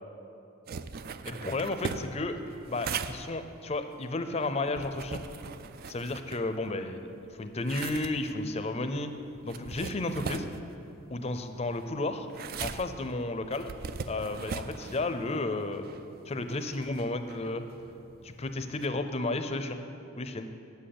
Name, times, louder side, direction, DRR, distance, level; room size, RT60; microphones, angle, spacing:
sound 1, 0.7-6.9 7.2-18.9, right 5 dB, 45° right, 0.3 m, -41 dB
voice 1, 1.3-2.4 2.7-5.2 5.9-9.1 9.4-10.5 11.1-12.3 12.6-13.7 14.1-15.9 16.3-17.6 18.2-19.8 20.2-20.5, left 2 dB, 30° left, 8 dB, 0.5 m, -32 dB
7.9 x 7.8 x 8.5 m, 2.8 s
head